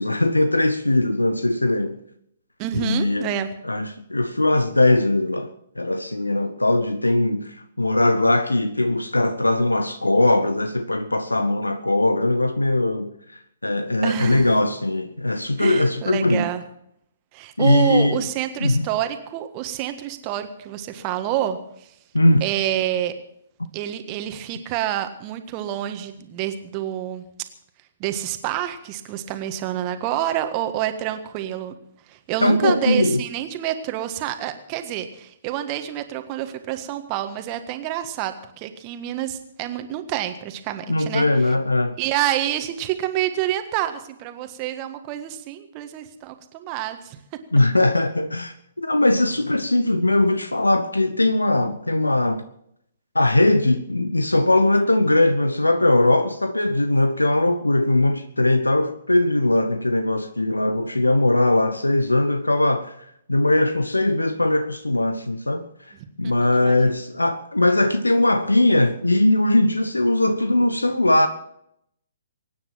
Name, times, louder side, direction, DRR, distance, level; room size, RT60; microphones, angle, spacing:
voice 1, 0.0-2.0 2.7-3.3 3.6-16.5 17.6-18.2 18.6-18.9 22.1-22.4 32.4-33.2 40.9-42.0 47.5-52.4 53.1-62.9 63.3-65.7 66.2-71.3, left 2 dB, 80° left, 0.9 m, -20 dB
voice 2, 2.6-3.5 14.0-14.5 15.6-16.6 17.3-21.6 22.4-23.1 23.7-27.2 28.0-31.7 32.1-41.2 42.0-47.2 66.2-66.8, right 12 dB, 30° right, 1.6 m, -28 dB
23.5 x 9.8 x 5.7 m
figure-of-eight pair, 125°, 0 cm